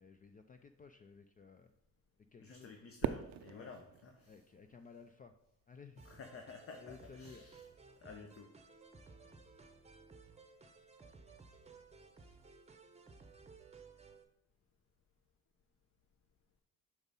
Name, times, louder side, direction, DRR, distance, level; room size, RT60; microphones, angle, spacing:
voice 1, 0.0-1.7 2.3-2.7 3.5-3.7 4.3-5.3 5.7-6.1 6.8-7.4, left 5 dB, 30° left, 8 dB, 0.4 m, -56 dB
voice 2, 2.4-4.4 6.0-7.6 8.0-8.5, left 4 dB, 50° left, 4 dB, 0.9 m, -52 dB
Fireworks, 3.0-5.3, right 11 dB, 60° right, 0.4 m, -42 dB
sound 1, 6.0-14.2, right 4 dB, 20° right, 0.8 m, -58 dB
6.1 x 5.2 x 4.1 m, 0.74 s
cardioid pair, 90°, 30 cm